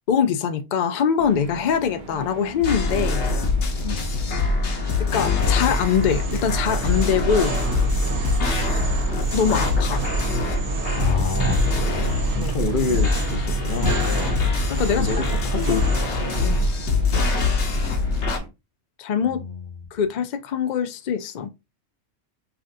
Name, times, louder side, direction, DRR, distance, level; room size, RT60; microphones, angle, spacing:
voice 1, 0.1-3.3 5.0-7.6 9.3-10.0 12.4-12.5 14.7-15.2 15.5-15.8 16.2-16.6 19.0-19.4 19.9-21.5, left 7 dB, 80° left, 0.4 m, -23 dB
sound 1, 1.2-18.5, right 3 dB, 45° right, 0.8 m, -39 dB
sound 2, 2.6-18.4, left 4 dB, 65° left, 1.2 m, -24 dB
sound 3, 5.2-16.7, right 3 dB, 85° right, 1.5 m, -27 dB
voice 2, 11.0-14.0 15.0-15.8 19.2-19.7, left 5 dB, 50° left, 0.8 m, -28 dB
5.7 x 2.5 x 2.6 m
omnidirectional pair, 1.3 m